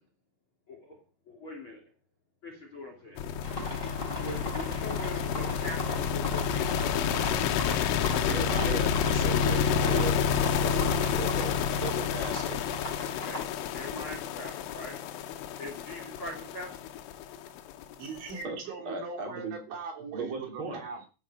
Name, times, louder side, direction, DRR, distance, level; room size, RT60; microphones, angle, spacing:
voice 1, 0.7-1.0 1.3-1.8 2.4-3.2 4.2-7.0 13.1-15.0 15.3-16.7 20.7-20.8, left 1 dB, 35° left, 3 dB, 2.8 m, -42 dB
sound 1, 3.2-18.3, left 7 dB, 85° left, 3.5 m, -29 dB
sound 2, 3.4-13.4, equal, 15° left, 2.8 m, -40 dB
voice 2, 8.2-10.9 11.2-11.5 11.8-12.7 18.4-18.6 18.9-19.6 20.1-20.8, right 4 dB, 30° right, 2 dB, 3.5 m, -37 dB
voice 3, 10.6-11.1 18.0-21.1, right 5 dB, 70° right, 2 dB, 5.4 m, -40 dB
13.5 x 9.4 x 5.6 m, 0.34 s
omnidirectional pair, 5.6 m